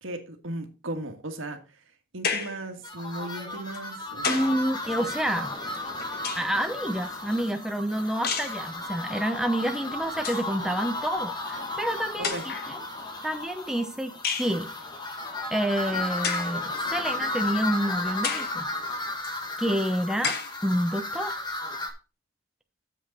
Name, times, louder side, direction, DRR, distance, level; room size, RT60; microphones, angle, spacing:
voice 1, 0.0-1.8 2.1-4.5 12.2-12.4, right 1 dB, 80° right, 1.7 m, -36 dB
sound 1, 2.2-2.7 3.7-4.6 5.7-6.7 8.2-8.6 9.7-9.8 10.1-10.5 11.5-11.6 12.2-12.7 14.2-14.6 16.2-16.6 17.2-17.3 18.2-18.6 19.2-19.3 20.2-20.6, left 5 dB, 50° left, 1.2 m, -31 dB
sound 2, 2.8-21.9, left 2 dB, 20° left, 1.4 m, -34 dB
sound 3, 4.1-19.1, left 2 dB, 75° left, 4.0 m, -49 dB
voice 2, 4.2-5.5 6.4-12.8 13.2-14.1 14.4-14.7 15.5-18.7 19.6-21.4, equal, 5° right, 0.6 m, -28 dB
8.2 x 7.3 x 4.1 m
head